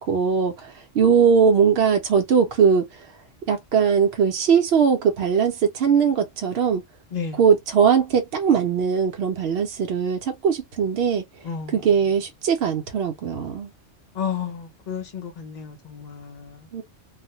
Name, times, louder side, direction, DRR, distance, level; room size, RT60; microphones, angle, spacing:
voice 1, 0.0-2.9 3.5-6.8 7.3-11.2 11.7-13.7 16.7-16.8, right 6 dB, 65° right, 0.8 m, -20 dB
voice 2, 11.4-11.8 14.1-16.6, left 7 dB, 45° left, 0.6 m, -32 dB
2.4 x 2.1 x 2.6 m
omnidirectional pair, 1.3 m